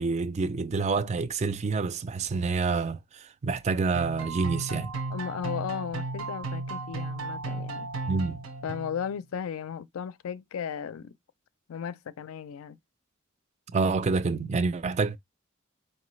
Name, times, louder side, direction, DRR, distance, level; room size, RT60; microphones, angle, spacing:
voice 1, 0.0-4.9 8.1-8.4 13.7-15.2, right 4 dB, 30° right, 0.3 m, -27 dB
sound 1, 3.9-9.1, right 3 dB, 90° right, 1.1 m, -35 dB
voice 2, 5.1-7.9 8.6-11.2 11.7-12.8, left 7 dB, 80° left, 0.4 m, -35 dB
4.6 x 2.9 x 3.1 m
head